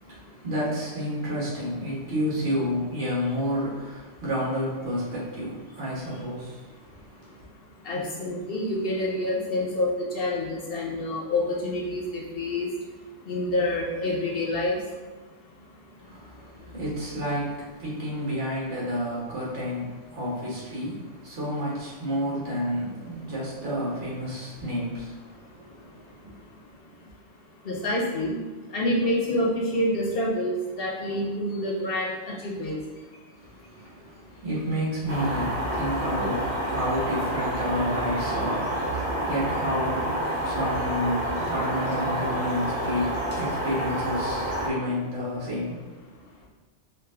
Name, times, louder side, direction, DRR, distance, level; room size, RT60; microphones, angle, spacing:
voice 1, 0.0-7.2 16.0-26.3 33.4-46.0, equal, 75° right, -7 dB, 1.8 m, -30 dB
voice 2, 7.8-12.7 13.3-14.8 27.6-28.4 28.7-32.8, left 1 dB, 55° left, -3 dB, 1.1 m, -27 dB
sound 1, 35.1-44.7, right 1 dB, 45° right, 1.1 m, -28 dB
5.0 x 2.6 x 3.7 m, 1.3 s
omnidirectional pair, 1.2 m